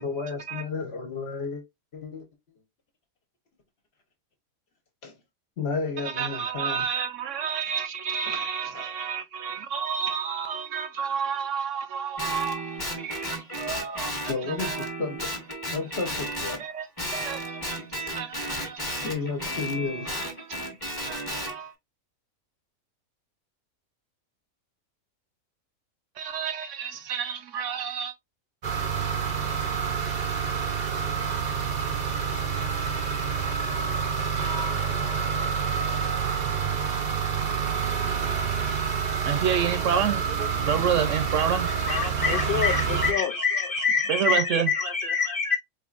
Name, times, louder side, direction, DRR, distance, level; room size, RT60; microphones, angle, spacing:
voice 1, 0.0-1.6 1.9-2.3 5.0-5.1 5.6-6.8 8.2-8.4 14.3-15.4 15.7-16.6 19.0-20.1, left 4 dB, 50° left, 1.2 m, -32 dB
voice 2, 6.0-14.9 16.6-19.1 20.0-20.5 20.9-21.7 26.2-28.1 39.2-40.2 40.6-41.7 44.1-44.7, right 7 dB, 65° right, 0.9 m, -30 dB
Guitar, 12.2-16.6 17.0-21.5, equal, 15° left, 1.1 m, -33 dB
sound 1, 28.6-43.1, right 6 dB, 45° right, 0.6 m, -28 dB
voice 3, 41.9-45.6, left 5 dB, 70° left, 0.5 m, -25 dB
4.4 x 3.0 x 2.4 m
omnidirectional pair, 1.5 m